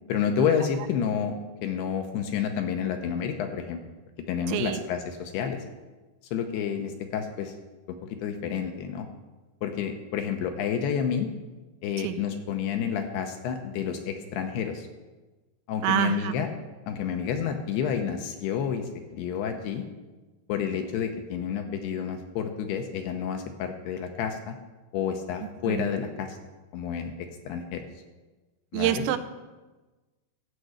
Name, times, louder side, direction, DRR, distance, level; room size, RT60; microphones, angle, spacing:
voice 1, 0.1-1.4 1.6-3.8 4.3-5.6 6.3-7.5 7.9-9.1 9.6-11.3 11.8-14.9 15.7-16.5 16.9-19.9 20.5-24.6 24.9-26.4 26.7-27.1 27.5-27.9 28.7-29.1, left 7 dB, 75° left, 5 dB, 2.6 m, -29 dB
voice 2, 4.5-4.8 12.0-12.1 15.8-16.3 25.7-25.8 28.7-29.2, right 12 dB, 90° right, 9 dB, 2.9 m, -26 dB
13.0 x 6.0 x 7.9 m, 1.2 s
omnidirectional pair, 5.2 m